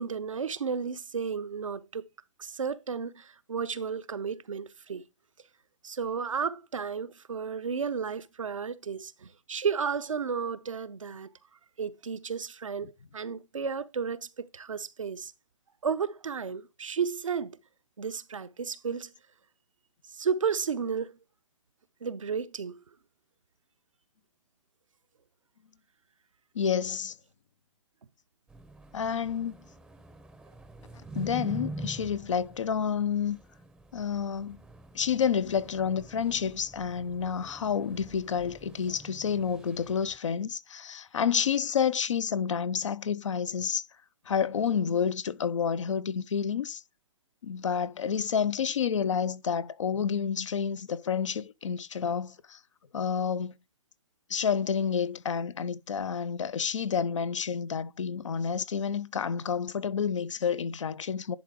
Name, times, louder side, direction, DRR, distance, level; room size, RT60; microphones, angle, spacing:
voice 1, 0.0-2.0 2.4-5.0 5.8-11.3 11.8-15.3 15.8-17.6 18.0-19.1 20.1-21.2 22.0-22.8, right 6 dB, 85° right, 0.7 m, -33 dB
voice 2, 26.5-27.1 28.9-29.6 31.1-33.4 33.9-34.6 34.9-43.8 44.3-46.8 47.4-52.6 52.9-53.5 54.3-61.4, left 7 dB, 75° left, 0.7 m, -29 dB
sound 1, 28.5-40.2, right 2 dB, 5° right, 0.6 m, -45 dB
11.0 x 3.9 x 4.6 m
hypercardioid pair, 125°, 16 cm